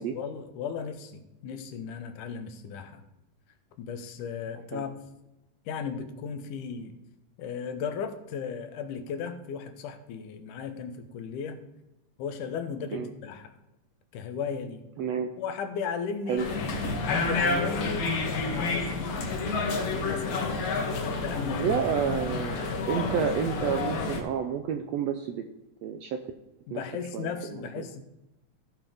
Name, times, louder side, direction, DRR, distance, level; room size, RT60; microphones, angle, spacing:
voice 1, 0.0-3.0 3.8-4.9 5.7-7.0 7.4-11.6 12.2-13.5 14.1-14.9 15.4-16.4 17.0-18.1 18.4-19.3 19.9-20.6 21.0-21.7 26.7-28.0, left 6 dB, 85° left, 8 dB, 2.4 m, -36 dB
voice 2, 15.0-15.3 16.3-16.4 21.6-25.4 25.8-26.2 26.7-26.8 27.1-27.9, right 8 dB, 80° right, 6 dB, 1.5 m, -30 dB
sound 1, 16.4-24.2, left 3 dB, 60° left, 2.1 m, -29 dB
16.0 x 5.6 x 3.5 m, 0.96 s
omnidirectional pair, 3.5 m